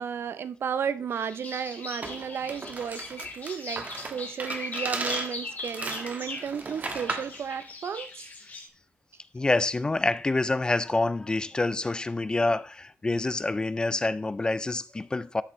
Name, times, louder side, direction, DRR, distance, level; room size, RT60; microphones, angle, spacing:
voice 1, 0.0-8.3 9.4-9.5, right 7 dB, 55° right, 0.5 m, -34 dB
sound 1, 1.1-8.7, left 3 dB, 35° left, 2.6 m, -40 dB
sound 2, 2.0-7.4, right 3 dB, 35° right, 1.3 m, -36 dB
voice 2, 9.3-15.4, left 2 dB, 20° left, 0.3 m, -27 dB
13.0 x 6.8 x 3.1 m
wide cardioid pair, 160°, 5 cm